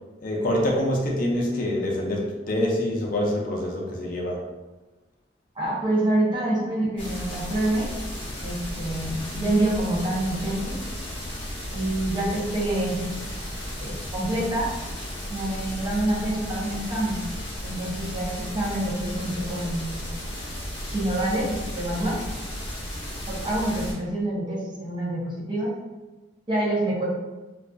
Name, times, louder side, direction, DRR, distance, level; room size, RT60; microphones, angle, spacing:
voice 1, 0.2-4.4, left 1 dB, 45° left, -1 dB, 0.4 m, -25 dB
voice 2, 5.6-7.9 8.4-10.8 11.7-13.0 13.8-14.7 15.3-17.2 17.6-20.1 20.9-22.2 23.3-25.7 26.5-27.1, right 1 dB, 25° right, -5 dB, 0.5 m, -26 dB
sound 1, 7.0-23.9, equal, 30° left, 0.8 m, -34 dB
2.4 x 2.3 x 2.2 m, 1.1 s
head